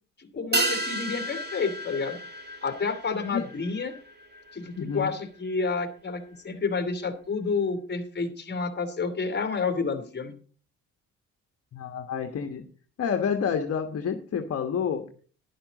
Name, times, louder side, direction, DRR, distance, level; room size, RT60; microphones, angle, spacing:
voice 1, 0.2-2.2 2.6-3.9 4.5-10.4, left 4 dB, 35° left, 7 dB, 2.6 m, -30 dB
sound 1, 0.5-5.2 5.5-5.6, right 2 dB, 35° right, 2.7 m, -33 dB
voice 2, 4.8-5.1 11.7-12.6 13.0-15.0, left 7 dB, 55° left, 5 dB, 1.3 m, -29 dB
11.5 x 11.0 x 4.1 m, 0.41 s
cardioid pair, 90°, 30 cm